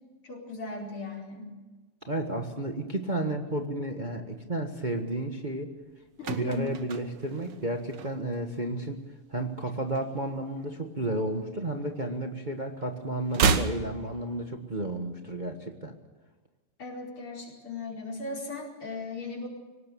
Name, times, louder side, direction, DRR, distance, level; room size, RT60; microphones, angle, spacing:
voice 1, 0.2-1.5 6.2-6.8 16.8-19.5, left 3 dB, 75° left, -2 dB, 5.7 m, -37 dB
voice 2, 2.1-5.7 6.3-9.0 9.3-15.9, right 1 dB, 25° right, 3 dB, 1.5 m, -32 dB
sound 1, 5.8-8.5 8.8-9.1 9.4-10.8 11.1-12.5 12.7-14.8 15.1-15.2, right 5 dB, 60° right, 1.8 m, -32 dB
24.5 x 18.5 x 7.0 m, 1.2 s
omnidirectional pair, 2.4 m